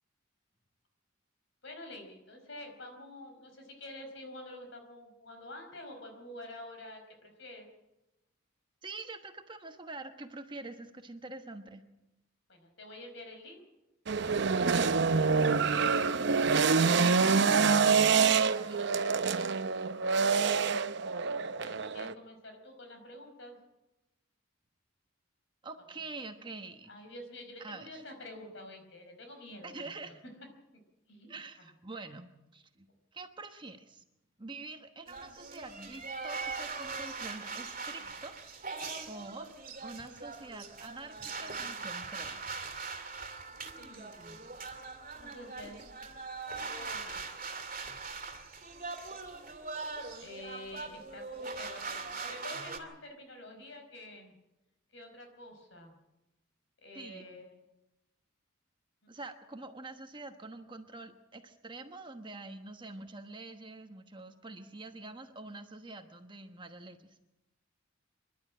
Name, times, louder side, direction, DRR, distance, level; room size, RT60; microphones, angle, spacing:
voice 1, 1.6-7.7 12.5-13.7 15.7-16.1 19.7-20.5 21.3-23.6 26.9-30.1 31.1-31.4 43.5-44.5 45.2-46.0 46.4-47.6 50.2-54.3 54.9-55.9 56.8-57.6 59.0-59.1, left 1 dB, 60° left, 5 dB, 4.9 m, -48 dB
voice 2, 8.8-11.8 16.9-18.9 25.6-27.0 27.6-28.0 29.6-30.2 31.3-32.9 33.1-34.0 34.4-38.3 38.6-38.7 39.1-39.5 39.8-42.4 56.9-57.2 59.1-67.2, right 3 dB, 25° right, 6 dB, 1.2 m, -46 dB
sound 1, 14.1-22.1, right 5 dB, 60° right, 0.7 m, -26 dB
sound 2, 35.1-52.8, right 4 dB, 40° right, 2.4 m, -41 dB
26.5 x 11.5 x 8.7 m, 0.96 s
head